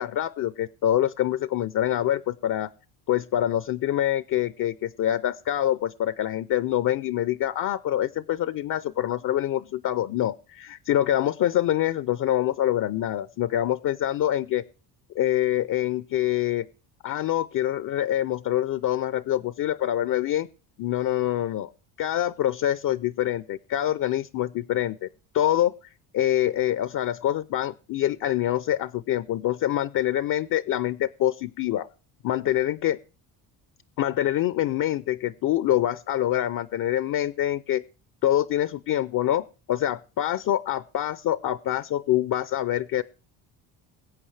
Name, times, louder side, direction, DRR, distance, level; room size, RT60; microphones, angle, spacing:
voice 1, 0.0-2.7 3.1-14.6 15.1-16.7 17.0-20.5 20.8-21.7 22.0-25.1 25.3-25.7 26.1-31.9 32.2-33.0 34.0-37.8 38.2-43.0, left 12 dB, 45° left, 16 dB, 0.6 m, -25 dB
21.5 x 8.4 x 3.3 m, 0.35 s
supercardioid pair, 80°, 46 cm